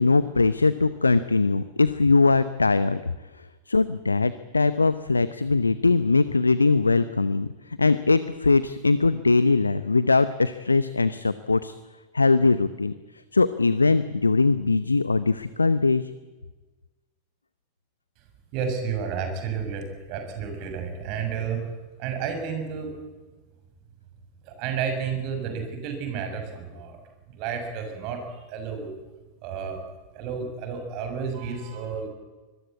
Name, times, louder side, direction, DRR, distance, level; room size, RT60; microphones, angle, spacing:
voice 1, 0.0-3.0 3.4-11.7 12.1-12.9 13.3-16.1, left 3 dB, 80° left, 15 dB, 0.8 m, -21 dB
voice 2, 18.5-21.7 22.0-23.0 24.4-27.0 27.3-28.9 29.4-29.8 30.1-32.1, right 6 dB, 45° right, 6 dB, 6.4 m, -31 dB
25.5 x 21.0 x 8.4 m, 1.2 s
figure-of-eight pair, 90°, 0 cm